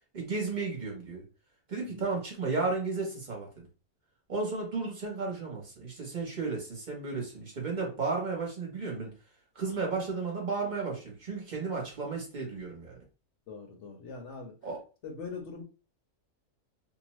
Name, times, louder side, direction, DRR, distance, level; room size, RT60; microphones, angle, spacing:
voice 1, 0.1-1.2 1.7-3.7 4.3-9.1 9.5-13.0 14.6-14.8, right 4 dB, 35° right, -1 dB, 0.9 m, -33 dB
voice 2, 13.5-14.5 15.0-15.6, left 4 dB, 60° left, 3 dB, 0.9 m, -42 dB
2.7 x 2.1 x 3.0 m, 0.34 s
omnidirectional pair, 1.6 m